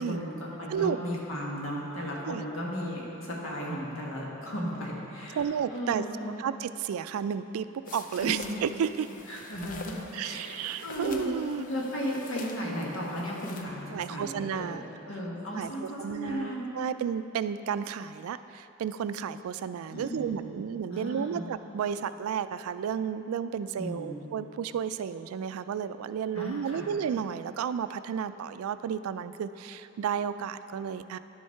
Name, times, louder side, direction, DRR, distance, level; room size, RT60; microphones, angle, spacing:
voice 1, 0.0-6.4 8.2-8.6 9.3-14.8 15.1-16.7 19.9-20.6 20.9-21.5 23.8-24.2 26.3-26.9, equal, 70° left, -3 dB, 1.6 m, -35 dB
voice 2, 5.3-6.0 6.4-7.7 7.9-9.1 10.1-11.6 13.9-14.8 15.6-31.2, right 7 dB, 85° right, 13 dB, 0.3 m, -32 dB
sound 1, 7.8-13.6, left 3 dB, 40° left, 0.5 m, -44 dB
10.5 x 6.3 x 4.5 m, 2.9 s
head